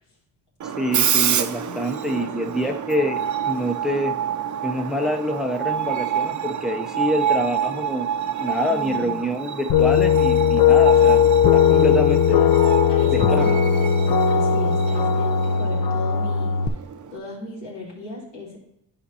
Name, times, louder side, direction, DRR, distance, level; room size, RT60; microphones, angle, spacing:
Screech, 0.6-17.2, right 8 dB, 45° right, 0.6 m, -28 dB
voice 1, 0.8-4.2 4.6-8.1 8.4-11.2 11.5-12.4 13.1-13.6, equal, ahead, 5 dB, 0.5 m, -26 dB
voice 2, 2.0-2.7 8.6-9.2 11.8-13.6 14.3-16.6 17.1-18.6, left 3 dB, 85° left, -4 dB, 3.0 m, -37 dB
sound 1, 9.7-16.7, left 7 dB, 60° left, 0.7 m, -18 dB
11.5 x 5.0 x 2.8 m, 0.80 s
cardioid pair, 95°, 41 cm